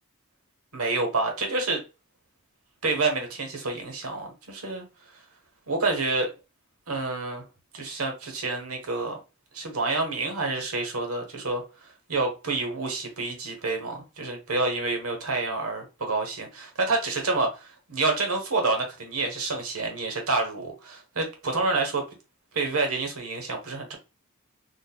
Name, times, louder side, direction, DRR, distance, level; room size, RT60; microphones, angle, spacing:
voice 1, 0.7-1.8 2.8-4.8 5.7-6.3 6.9-7.4 7.7-9.2 9.5-11.6 12.1-22.0 22.5-24.0, right 3 dB, 90° right, 1.1 m, -28 dB
4.0 x 2.4 x 2.2 m
head